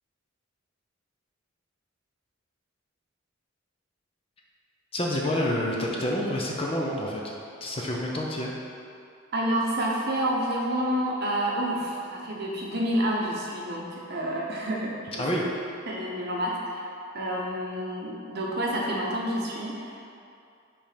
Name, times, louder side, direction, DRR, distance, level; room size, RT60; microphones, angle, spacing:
voice 1, 4.9-7.2 7.6-8.5 15.2-15.4, left 1 dB, 25° left, -2 dB, 0.7 m, -28 dB
voice 2, 9.3-15.5 15.9-16.9 17.1-20.0, right 1 dB, 50° right, -2 dB, 0.9 m, -29 dB
5.3 x 4.4 x 5.1 m, 2.5 s
head